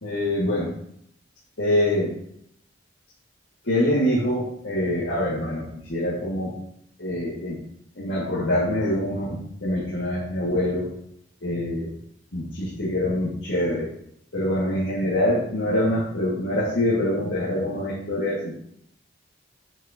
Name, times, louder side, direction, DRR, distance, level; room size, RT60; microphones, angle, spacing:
voice 1, 0.0-0.7 1.6-2.1 3.6-6.6 7.0-7.6 8.0-10.9 11.4-11.9 12.3-13.9 14.3-18.6, left 1 dB, 70° left, -8 dB, 1.9 m, -25 dB
7.4 x 6.3 x 2.8 m, 0.71 s
head